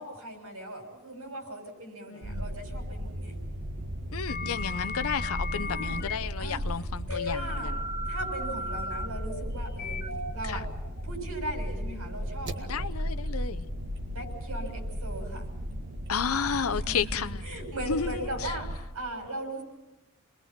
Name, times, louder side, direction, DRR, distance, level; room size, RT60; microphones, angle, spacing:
voice 1, 0.0-3.4 5.6-6.0 6.4-6.6 7.1-7.7 8.0-10.0 10.3-10.7 11.0-12.7 14.1-15.5 16.8-17.2 17.4-19.6, right 1 dB, 80° right, 6.8 m, -38 dB
voice 2, 2.1-2.5 4.1-7.8 10.4-10.6 12.6-13.7 16.1-17.5 17.8-18.5, left 6 dB, 70° left, 0.7 m, -32 dB
sound 1, 2.2-18.8, equal, 55° right, 1.8 m, -35 dB
sound 2, 4.3-6.2 7.1-11.1, left 3 dB, 45° left, 1.1 m, -36 dB
29.5 x 21.5 x 5.9 m
head